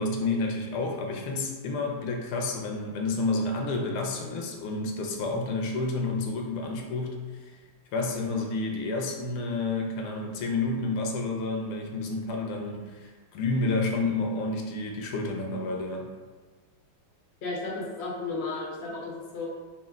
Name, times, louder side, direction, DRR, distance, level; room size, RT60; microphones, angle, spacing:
voice 1, 0.0-7.2 7.9-16.1, left 3 dB, 80° left, 1 dB, 1.4 m, -30 dB
voice 2, 17.4-19.5, left 3 dB, 60° left, -4 dB, 0.6 m, -34 dB
4.3 x 2.4 x 3.5 m, 1.4 s
omnidirectional pair, 2.4 m